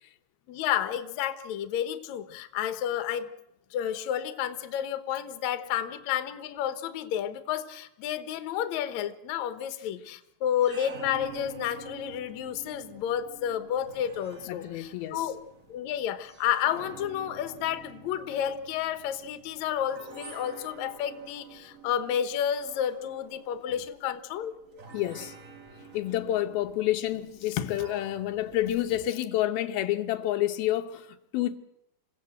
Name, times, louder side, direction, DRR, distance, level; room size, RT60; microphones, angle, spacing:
voice 1, 0.5-3.3 3.7-15.4 15.7-24.5, left 10 dB, 65° left, 2.2 m, -31 dB
sound 1, 10.4-29.0, right 5 dB, 80° right, 0.7 m, -49 dB
voice 2, 14.5-15.3 24.9-25.4 25.8-31.6, left 13 dB, 90° left, 2.9 m, -29 dB
28.0 x 16.0 x 7.9 m
omnidirectional pair, 4.2 m